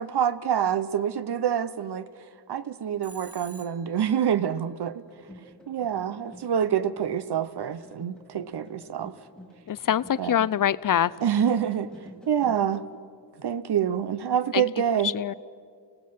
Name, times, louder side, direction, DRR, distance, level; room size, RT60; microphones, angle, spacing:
voice 1, 0.0-2.1 2.5-5.0 5.7-9.1 10.2-10.4 11.2-11.9 12.3-12.8 13.4-15.1, right 9 dB, 65° right, 0.9 m, -26 dB
Telephone, 3.0-4.1, right 2 dB, 30° right, 1.7 m, -48 dB
sound 1, 5.0-12.8, left 1 dB, ahead, 2.7 m, -50 dB
voice 2, 9.7-11.1 14.5-14.6 15.0-15.3, left 10 dB, 50° left, 0.5 m, -24 dB
28.0 x 17.5 x 5.8 m
cardioid pair, 60°, 43 cm